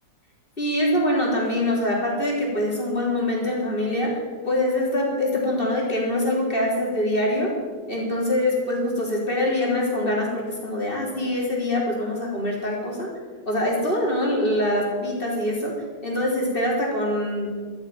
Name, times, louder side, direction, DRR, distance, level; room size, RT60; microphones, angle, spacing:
voice 1, 0.6-4.1 4.5-7.5 7.9-13.1 13.5-15.7 16.0-17.5, left 1 dB, 15° left, -3 dB, 3.8 m, -24 dB
13.0 x 9.6 x 9.2 m, 1.5 s
omnidirectional pair, 3.4 m